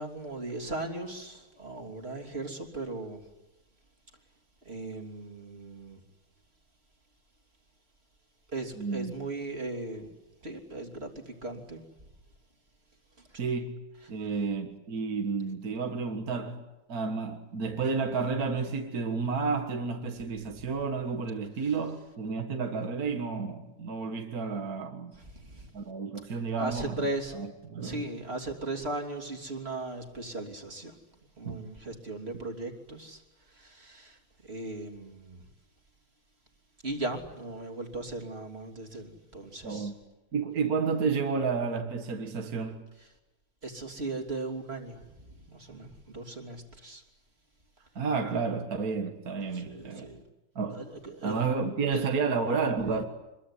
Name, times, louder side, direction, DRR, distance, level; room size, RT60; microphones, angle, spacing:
voice 1, 0.0-3.3 4.6-6.0 8.5-10.1 10.4-11.9 13.2-13.5 14.0-14.1 21.6-21.7 25.1-25.7 26.2-27.4 27.8-31.0 31.4-35.4 36.8-39.9 43.0-43.1 43.6-47.0 49.5-50.2 50.7-51.5 51.9-52.1, right 2 dB, 30° right, 3.3 m, -38 dB
voice 2, 8.8-9.1 13.4-13.8 14.1-16.6 16.9-25.1 25.7-27.0 27.4-28.0 31.4-31.6 39.6-39.9 40.3-42.8 48.0-50.1 50.6-50.8 51.2-53.0, right 5 dB, 45° right, 2.0 m, -31 dB
25.0 x 22.5 x 9.9 m
omnidirectional pair, 2.2 m